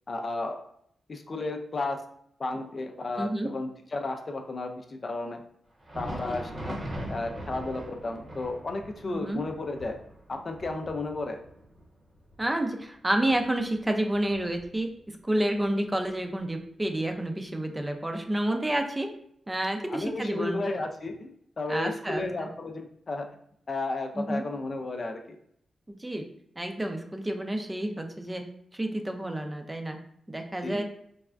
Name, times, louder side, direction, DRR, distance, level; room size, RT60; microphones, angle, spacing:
voice 1, 0.1-0.6 1.1-2.0 2.4-5.4 5.9-6.5 7.1-10.0 10.3-11.4 19.9-23.3 23.7-25.4 30.6-30.8, left 2 dB, 45° left, 4 dB, 0.4 m, -33 dB
voice 2, 3.2-3.5 6.2-6.4 9.1-9.4 12.4-19.1 19.5-20.6 21.7-22.5 24.2-24.4 25.9-26.2 26.6-28.4 28.7-30.0 30.3-30.8, right 1 dB, 20° right, 4 dB, 0.4 m, -29 dB
Thunder, 5.7-15.2 15.5-15.7 16.4-16.5 17.5-17.6, equal, 45° right, 0.9 m, -42 dB
3.3 x 2.1 x 2.4 m, 0.70 s
cardioid pair, 60°, 0 cm